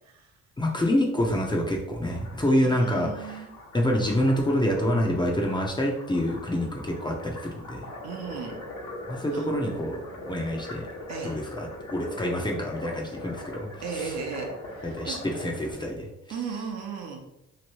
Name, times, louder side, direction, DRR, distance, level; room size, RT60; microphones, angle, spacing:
voice 1, 0.6-3.4 3.7-7.9 9.1-10.9 11.2-14.2 14.8-16.4, equal, 15° left, 0 dB, 0.5 m, -27 dB
sound 1, 2.1-15.7, left 1 dB, 75° left, 1.1 m, -42 dB
voice 2, 2.5-3.5 8.0-8.5 9.3-9.5 11.1-11.3 13.8-14.5 15.0-15.2 16.3-17.3, right 6 dB, 60° right, 2 dB, 0.8 m, -35 dB
3.0 x 2.5 x 2.9 m, 0.87 s
cardioid pair, 90°, 30 cm